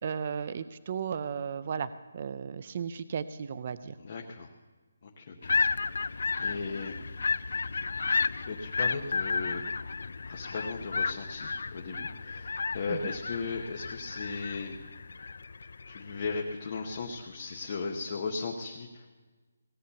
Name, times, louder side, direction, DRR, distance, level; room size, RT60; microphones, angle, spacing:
voice 1, 0.0-1.9 2.1-3.9 12.9-13.1, right 7 dB, 30° right, 14 dB, 0.4 m, -35 dB
voice 2, 4.0-4.5 5.2-5.6 6.4-6.9 8.1-9.6 10.3-14.8 15.9-19.1, left 4 dB, 30° left, 0 dB, 1.0 m, -37 dB
sound 1, 5.4-17.0, left 4 dB, 55° left, 0.3 m, -33 dB
17.5 x 8.4 x 6.9 m, 1.3 s
hypercardioid pair, 175°, 0 cm